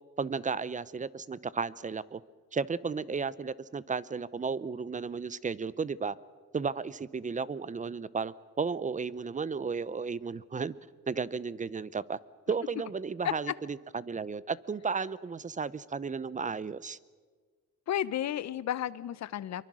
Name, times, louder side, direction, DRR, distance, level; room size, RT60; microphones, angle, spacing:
voice 1, 0.2-2.2 2.5-6.2 6.5-10.7 11.1-12.2 12.5-17.0, right 5 dB, 25° right, 18 dB, 0.7 m, -34 dB
voice 2, 17.9-19.6, left 11 dB, 65° left, 17 dB, 0.9 m, -32 dB
25.0 x 23.0 x 6.3 m, 1.5 s
cardioid pair, 90°, 30 cm